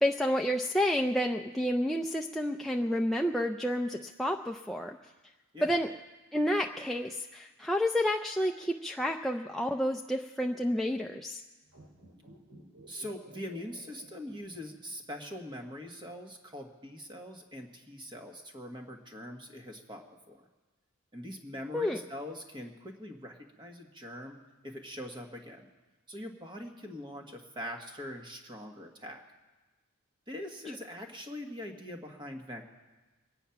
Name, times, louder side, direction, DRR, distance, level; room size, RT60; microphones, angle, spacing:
voice 1, 0.0-5.0 5.6-5.9 6.3-11.4 21.7-22.0, equal, ahead, 1 dB, 0.4 m, -30 dB
sound 1, 11.7-15.1 15.3-15.4, right 1 dB, 90° right, 2.9 m, -55 dB
voice 2, 12.9-20.4 21.1-24.4 24.6-25.7 26.1-29.2 30.3-32.6, left 1 dB, 25° right, 3 dB, 1.4 m, -43 dB
23.0 x 9.2 x 5.8 m, 1.2 s
head